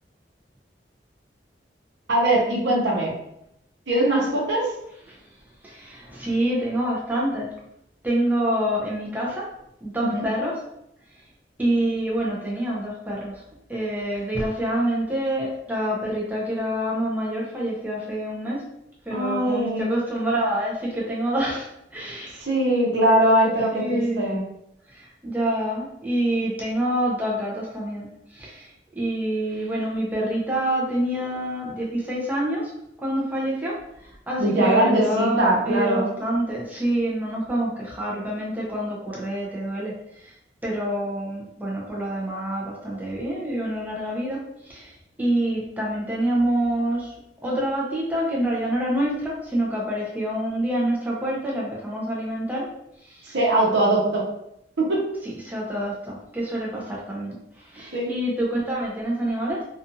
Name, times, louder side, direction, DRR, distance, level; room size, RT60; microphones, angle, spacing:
voice 1, 2.1-3.1 3.9-4.7 10.0-10.2 19.1-19.9 22.4-24.4 34.4-36.1 53.3-54.2 54.8-55.0 57.9-58.1, right 1 dB, 90° right, -3 dB, 0.8 m, -21 dB
voice 2, 5.6-7.5 8.0-9.5 9.8-10.6 11.6-13.4 13.7-18.6 19.1-21.7 21.9-22.4 23.7-24.2 24.9-28.7 29.0-32.7 33.0-33.8 34.3-40.0 40.6-44.9 45.2-47.1 47.4-52.7 53.1-53.4 55.2-57.4 57.7-59.6, right 1 dB, 10° right, -5 dB, 0.6 m, -26 dB
2.5 x 2.4 x 2.6 m, 0.80 s
head